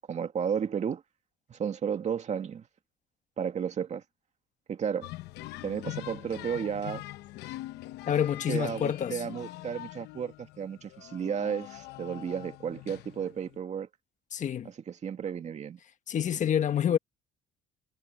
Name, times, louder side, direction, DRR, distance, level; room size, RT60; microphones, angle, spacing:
voice 1, 0.1-1.0 1.5-2.7 3.4-4.0 4.7-5.1 5.6-7.0 8.5-13.9 14.6-15.8, right 7 dB, 45° right, 2.2 m, -33 dB
sound 1, 5.0-13.6, left 17 dB, 85° left, 0.8 m, -43 dB
voice 2, 8.1-9.2 14.3-14.7 16.1-17.0, left 9 dB, 45° left, 1.3 m, -27 dB
cardioid pair, 110°, 17 cm